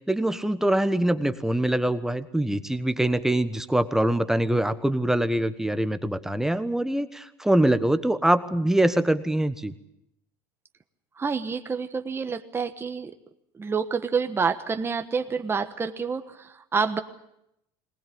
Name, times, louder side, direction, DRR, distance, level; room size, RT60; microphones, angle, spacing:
voice 1, 0.1-9.7, right 1 dB, 5° right, 11 dB, 1.2 m, -24 dB
voice 2, 11.2-13.1 13.5-17.0, right 5 dB, 20° right, 7 dB, 1.3 m, -28 dB
20.0 x 20.0 x 8.6 m, 0.80 s
supercardioid pair, 115°, 12 cm